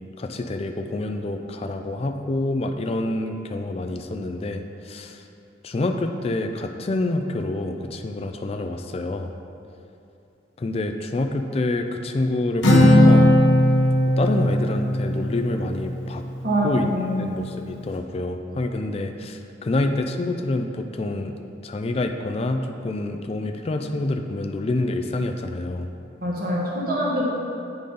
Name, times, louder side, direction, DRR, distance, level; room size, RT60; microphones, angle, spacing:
voice 1, 0.2-5.2 5.6-9.3 10.6-13.3 14.1-16.2 16.6-16.9 17.2-21.3 21.6-25.9, left 2 dB, 30° left, 5 dB, 0.3 m, -27 dB
Acoustic guitar, 12.6-16.3, left 1 dB, 85° left, 1.0 m, -18 dB
voice 2, 16.4-17.2 26.2-27.3, equal, 50° right, -5 dB, 1.2 m, -24 dB
8.4 x 3.9 x 5.2 m, 2.7 s
head